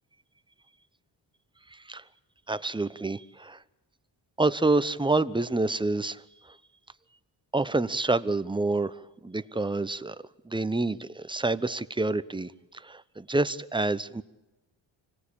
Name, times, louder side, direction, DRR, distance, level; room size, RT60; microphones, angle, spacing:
voice 1, 1.7-2.0 2.5-3.6 4.4-6.2 6.5-6.6 7.5-10.2 10.4-14.2, right 2 dB, 10° right, 14 dB, 0.9 m, -28 dB
25.0 x 17.5 x 8.7 m, 1.0 s
cardioid pair, 60°, 47 cm